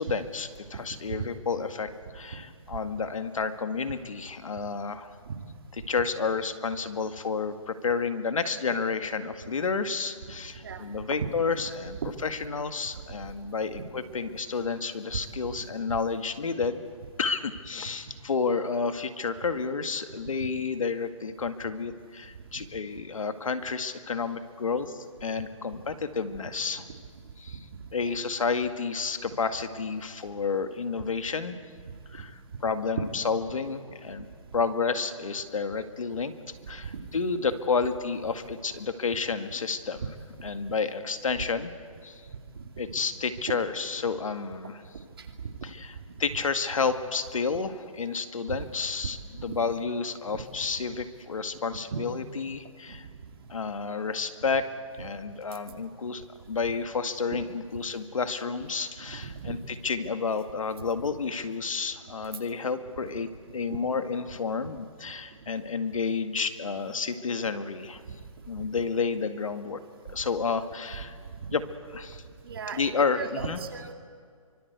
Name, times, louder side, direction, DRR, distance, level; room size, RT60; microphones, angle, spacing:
voice 1, 0.0-5.2 5.9-16.8 17.2-26.8 27.4-27.6 27.9-31.6 32.1-34.3 34.5-36.3 36.7-40.1 40.4-41.7 42.0-42.2 42.8-44.8 45.6-45.9 46.2-49.2 49.4-53.1 53.5-54.6 55.0-59.6 59.8-63.3 63.5-68.0 68.5-69.8 70.1-71.2 71.5-71.6 71.9-72.2 72.7-73.6, left 5 dB, 70° left, 9 dB, 2.0 m, -30 dB
voice 2, 11.2-11.7 12.0-12.1 13.7-13.8 15.9-16.0 28.0-28.1 32.9-33.0 49.4-49.6 50.3-50.4 51.9-52.0 59.1-59.5 71.5-71.6 72.4-73.9, right 6 dB, 45° right, 5 dB, 2.5 m, -36 dB
25.5 x 24.5 x 8.2 m, 2.1 s
hypercardioid pair, 170°, 18 cm